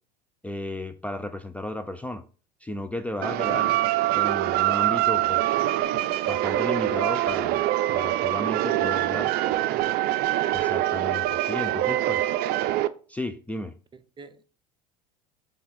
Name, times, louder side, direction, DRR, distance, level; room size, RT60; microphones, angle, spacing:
voice 1, 0.4-2.2 2.6-3.8 4.1-5.6 6.3-7.6 7.9-9.3 10.5-12.3 13.1-13.7, left 1 dB, 5° left, 0.6 m, -34 dB
sound 1, 3.2-12.9, right 14 dB, 50° right, 0.6 m, -24 dB
voice 2, 8.7-9.6 11.9-12.0 13.9-14.5, right 5 dB, 25° right, 0.9 m, -44 dB
7.9 x 3.4 x 6.3 m
hypercardioid pair, 75°, 21 cm